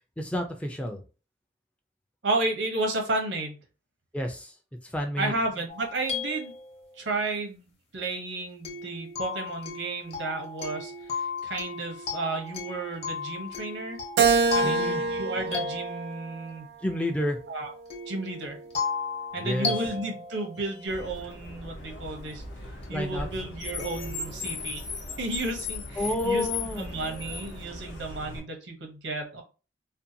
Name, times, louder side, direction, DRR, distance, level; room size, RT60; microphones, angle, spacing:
voice 1, 0.2-1.0 4.1-4.5 4.8-5.3 14.6-15.0 16.8-17.4 19.4-19.7 22.9-23.3 26.0-26.9, left 1 dB, 5° left, 2 dB, 0.3 m, -29 dB
voice 2, 2.2-3.6 5.2-6.5 7.0-7.7 7.9-14.0 14.5-16.7 17.5-17.7 18.1-18.6 19.3-22.4 22.9-24.8 25.2-29.4, right 2 dB, 85° right, 3 dB, 0.7 m, -32 dB
sound 1, 5.7-7.2 8.7-16.6 17.9-21.2 22.8-22.9 23.8-24.3, left 4 dB, 35° left, 0.7 m, -35 dB
Keyboard (musical), 14.2-16.7 17.3-18.5, right 5 dB, 70° right, 0.3 m, -27 dB
Car, 20.9-28.4, left 3 dB, 80° left, 0.7 m, -37 dB
2.6 x 2.2 x 2.6 m, 0.33 s
head